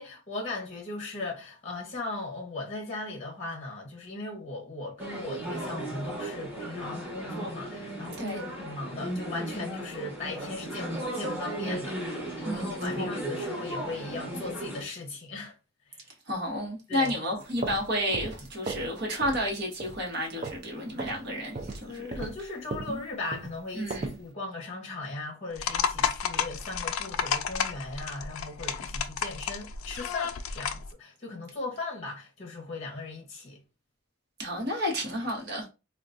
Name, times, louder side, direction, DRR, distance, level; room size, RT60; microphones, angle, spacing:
voice 1, 0.0-12.0 12.3-15.5 16.9-17.1 21.9-33.6, left 2 dB, 30° left, 0.8 m, -38 dB
sound 1, 5.0-14.8, right 1 dB, 10° right, 1.2 m, -35 dB
voice 2, 12.4-13.1 16.3-22.1 22.9-23.0 23.7-24.2 34.4-35.7, equal, 50° right, 1.0 m, -31 dB
sound 2, 17.4-18.9 19.2-19.5 19.8-20.7 21.0-21.2 21.5-24.2, right 3 dB, 35° right, 0.4 m, -37 dB
sound 3, 25.6-30.9, left 7 dB, 80° left, 0.4 m, -31 dB
3.7 x 2.3 x 2.5 m
head